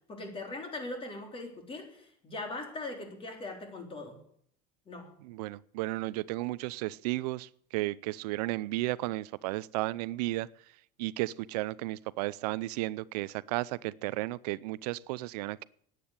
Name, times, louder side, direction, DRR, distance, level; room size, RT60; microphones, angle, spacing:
voice 1, 0.1-4.2 4.9-5.1, left 2 dB, 25° left, 4 dB, 3.8 m, -40 dB
voice 2, 5.2-10.5 11.0-15.6, right 19 dB, 90° right, 19 dB, 0.5 m, -34 dB
10.0 x 9.3 x 9.7 m, 0.63 s
supercardioid pair, 120°, 20 cm